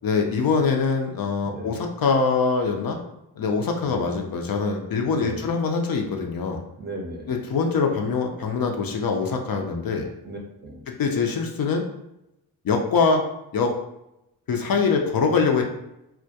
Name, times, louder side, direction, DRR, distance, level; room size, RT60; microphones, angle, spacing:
voice 1, 0.0-3.0 3.4-6.6 7.3-10.1 10.9-11.8 12.6-13.2 13.5-13.7 14.5-15.7, left 4 dB, 60° left, 2 dB, 0.5 m, -23 dB
voice 2, 1.4-1.7 3.8-4.0 5.1-5.5 6.8-7.3 10.2-10.8, right 1 dB, 25° right, 0 dB, 0.5 m, -36 dB
2.2 x 2.1 x 2.7 m, 0.87 s
cardioid pair, 60°, 40 cm